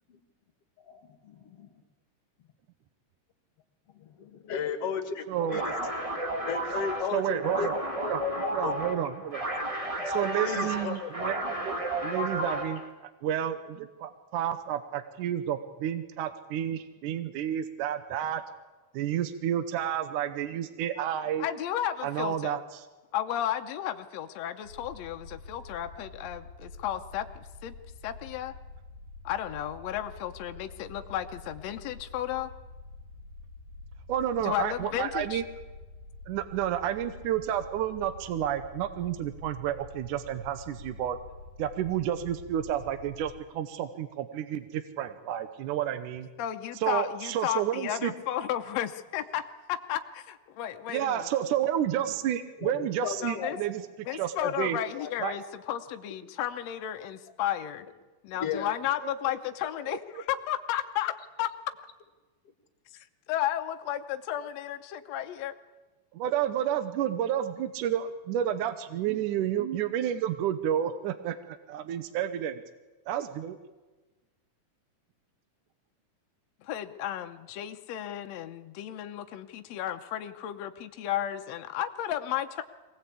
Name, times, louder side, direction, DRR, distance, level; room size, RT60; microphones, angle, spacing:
voice 1, 0.9-1.7 3.9-5.7 6.5-7.7 8.0-8.7 10.4-11.1 52.6-53.6 54.1-54.5 54.9-55.1 58.4-58.7, left 7 dB, 50° left, 7 dB, 2.3 m, -35 dB
voice 2, 5.3-5.6 7.1-7.8 8.1-9.4 10.1-11.8 12.0-12.8 13.2-18.4 18.9-21.5 22.0-22.9 34.1-35.4 36.3-41.2 41.6-46.3 46.8-48.1 50.9-53.8 54.1-54.8 55.2-55.3 59.0-59.4 59.9-60.0 66.1-72.6 73.1-73.6, right 10 dB, 70° right, 10 dB, 2.2 m, -30 dB
sound 1, 5.4-12.9, right 1 dB, 35° right, 0.5 m, -33 dB
voice 3, 21.4-22.6 23.1-27.3 27.6-27.7 28.0-28.5 29.2-32.5 34.4-35.4 46.4-51.2 53.2-53.6 54.0-57.8 58.2-61.5 62.9-65.5 76.6-82.6, left 11 dB, 75° left, 6 dB, 1.6 m, -33 dB
sound 2, 24.6-43.3, left 3 dB, 55° right, 4.6 m, -47 dB
23.5 x 18.5 x 8.4 m, 1.2 s
omnidirectional pair, 4.1 m